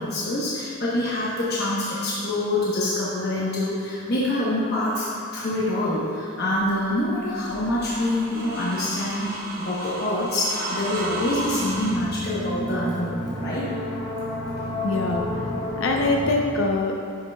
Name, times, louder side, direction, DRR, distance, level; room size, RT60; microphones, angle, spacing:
voice 1, 0.0-5.1 5.3-13.7, left 1 dB, 45° left, -8 dB, 1.1 m, -26 dB
sound 1, 6.5-11.9, right 1 dB, 40° right, 0.9 m, -33 dB
sound 2, 10.8-16.3, equal, 30° left, 1.6 m, -31 dB
voice 2, 14.8-15.2 15.8-17.1, left 2 dB, 65° left, 1 dB, 0.6 m, -23 dB
10.5 x 5.8 x 2.3 m, 2.6 s
head